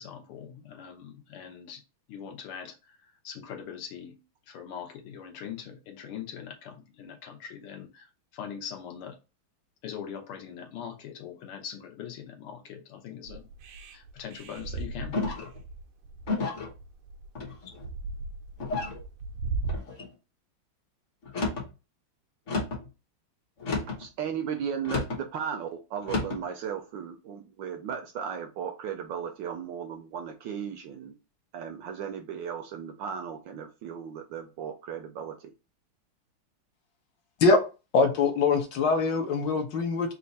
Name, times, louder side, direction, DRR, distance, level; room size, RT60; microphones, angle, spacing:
voice 1, 0.0-1.8 2.1-2.8 3.2-4.2 4.5-8.1 8.3-9.2 9.8-13.5 13.9-15.3, left 8 dB, 85° left, 1.8 m, -41 dB
sound 1, 13.3-19.8, right 3 dB, 90° right, 1.6 m, -37 dB
sound 2, 15.1-15.6 16.2-16.7 17.4-17.9 18.6-19.0 19.7-20.1 21.2-21.7 22.5-22.9 23.6-24.1 24.8-25.2 26.0-26.4, left 3 dB, 45° left, 1.1 m, -31 dB
voice 2, 23.9-31.1 31.5-35.5, right 7 dB, 75° right, 1.1 m, -36 dB
voice 3, 37.9-40.1, left 4 dB, 65° left, 1.3 m, -23 dB
4.3 x 2.5 x 4.0 m
omnidirectional pair, 2.3 m